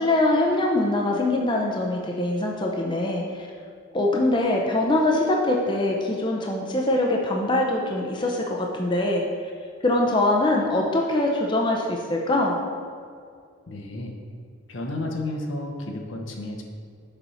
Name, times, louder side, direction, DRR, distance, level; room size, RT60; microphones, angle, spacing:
voice 1, 0.0-3.5 3.9-9.2 9.8-12.6, left 2 dB, 25° left, 0 dB, 0.6 m, -23 dB
voice 2, 13.7-14.2 14.7-16.6, left 1 dB, 75° left, 2 dB, 0.9 m, -32 dB
7.0 x 4.4 x 5.5 m, 2.2 s
head